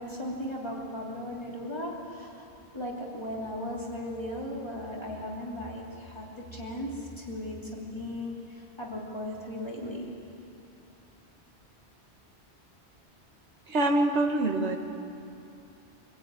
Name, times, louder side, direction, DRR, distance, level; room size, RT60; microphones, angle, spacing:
voice 1, 0.0-2.5 2.7-10.1, left 1 dB, 25° left, -4 dB, 3.2 m, -37 dB
voice 2, 13.7-14.8, right 2 dB, 90° right, 3 dB, 2.0 m, -25 dB
24.5 x 15.0 x 9.2 m, 2.8 s
omnidirectional pair, 1.1 m